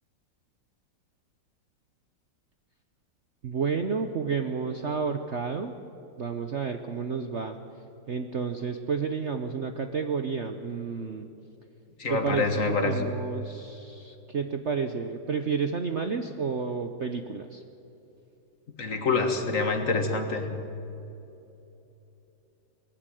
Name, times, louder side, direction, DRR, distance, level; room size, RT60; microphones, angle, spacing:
voice 1, 3.4-5.7 6.2-7.6 8.1-11.3 12.1-17.6, right 5 dB, 50° right, 7 dB, 0.9 m, -31 dB
voice 2, 12.0-13.1 18.8-20.5, left 3 dB, 45° left, 6 dB, 1.9 m, -26 dB
19.5 x 15.0 x 9.2 m, 2.9 s
omnidirectional pair, 2.0 m